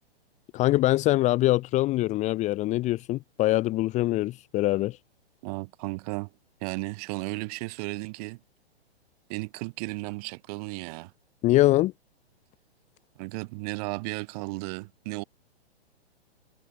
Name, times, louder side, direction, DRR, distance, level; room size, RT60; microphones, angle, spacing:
voice 1, 0.5-5.0 11.4-11.9, left 17 dB, 20° left, 1.4 m, -23 dB
voice 2, 5.4-6.3 6.6-8.4 9.3-11.1 13.2-15.2, right 26 dB, 35° right, 5.6 m, -34 dB
figure-of-eight pair, 115°, 32 cm